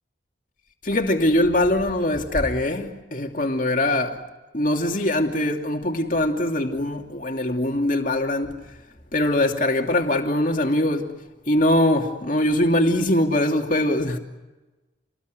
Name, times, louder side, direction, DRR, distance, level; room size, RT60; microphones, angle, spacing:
voice 1, 0.8-4.2 4.5-8.6 9.1-11.1 11.5-14.2, left 1 dB, 45° left, 2.8 m, -22 dB
29.5 x 20.5 x 9.5 m
head